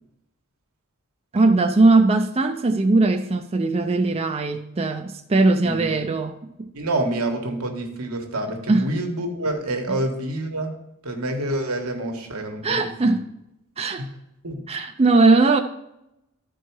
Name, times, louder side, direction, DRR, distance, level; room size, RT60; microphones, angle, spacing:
voice 1, 1.3-6.4 8.7-8.9 9.9-10.0 12.6-13.3 13.8-14.0 14.7-15.6, right 3 dB, 30° right, 0.5 m, -19 dB
voice 2, 6.7-10.8 11.0-13.2 14.0-14.1 14.4-14.6, right 1 dB, 85° right, 1.5 m, -27 dB
12.5 x 4.6 x 4.6 m
head